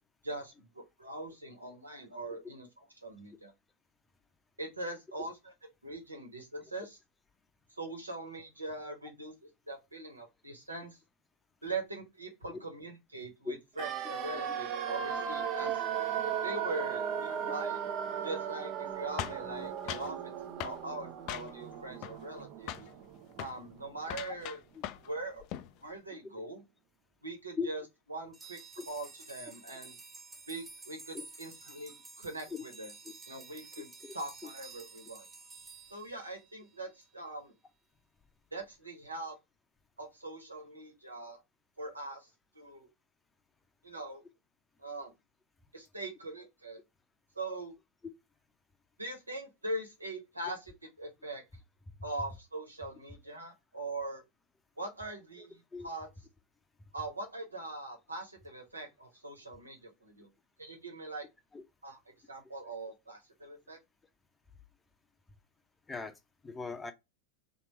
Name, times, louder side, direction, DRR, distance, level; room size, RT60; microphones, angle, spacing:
voice 1, 0.2-2.7 3.0-3.5 4.6-5.5 5.8-6.9 7.7-9.3 9.7-11.0 11.6-15.7 16.4-17.8 18.2-20.3 20.6-22.8 23.4-24.6 25.0-25.4 25.8-26.6 27.2-27.8 28.1-28.6 28.9-30.0 30.5-32.9 33.3-33.9 34.1-35.3 35.9-37.5 38.5-39.4 40.0-41.4 41.8-42.3 42.5-42.9 43.8-44.2 44.8-45.1 45.7-46.8 47.3-47.7 49.0-50.6 51.0-51.4 52.0-54.2 54.8-56.1 56.9-60.3 60.6-61.3 61.8-62.0 62.3-63.8, right 2 dB, 80° right, 1.4 m, -42 dB
sound 1, 13.8-23.7 24.0-24.1, right 8 dB, 40° right, 0.6 m, -37 dB
sound 2, 19.2-20.1 20.6-20.8 21.3-21.7 22.0-22.4 22.7-22.9 23.3-23.6 24.0-25.1 25.4-25.7, left 12 dB, 40° left, 0.4 m, -40 dB
sound 3, 28.3-36.9, right 4 dB, 20° right, 1.0 m, -51 dB
voice 2, 55.4-55.9 61.5-61.6 65.9-66.9, left 4 dB, 10° left, 0.7 m, -39 dB
3.3 x 3.0 x 4.5 m
figure-of-eight pair, 90°, 0 cm